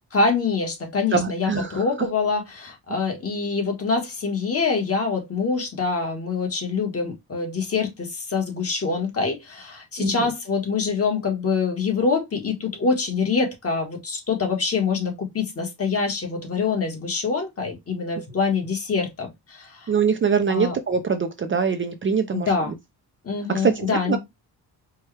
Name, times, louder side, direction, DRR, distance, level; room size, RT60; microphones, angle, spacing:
voice 1, 0.1-19.9 20.5-20.7 22.3-22.8 23.2-24.2, left 4 dB, 40° left, 1.3 m, -25 dB
voice 2, 1.1-1.8 2.9-3.0 10.0-10.3 19.9-22.5 23.5-24.2, right 6 dB, 35° right, 0.4 m, -23 dB
4.4 x 2.3 x 3.2 m
cardioid pair, 125°, 38 cm